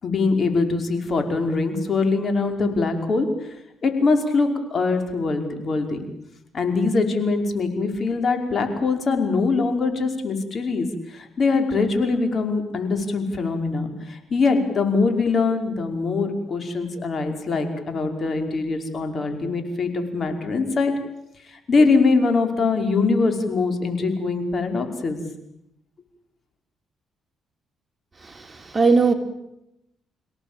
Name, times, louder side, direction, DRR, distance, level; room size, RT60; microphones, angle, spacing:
voice 1, 0.0-3.5 3.8-6.0 6.5-20.9 21.5-25.2, left 4 dB, 45° left, 5 dB, 5.4 m, -23 dB
voice 2, 28.2-29.1, right 4 dB, 25° right, 5 dB, 3.4 m, -20 dB
29.5 x 17.5 x 9.1 m, 0.83 s
cardioid pair, 90°, 0 cm